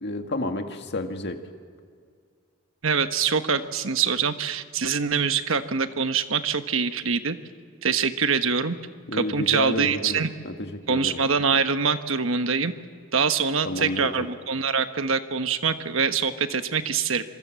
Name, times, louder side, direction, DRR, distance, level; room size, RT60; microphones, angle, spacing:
voice 1, 0.0-1.4 9.1-10.2 10.4-11.2 13.6-14.3, left 2 dB, 55° left, 5 dB, 1.9 m, -30 dB
voice 2, 2.8-7.4 7.8-8.8 9.1-10.3 10.9-12.7 13.1-17.2, right 5 dB, 65° right, 9 dB, 1.2 m, -24 dB
26.5 x 23.0 x 7.6 m, 2.1 s
head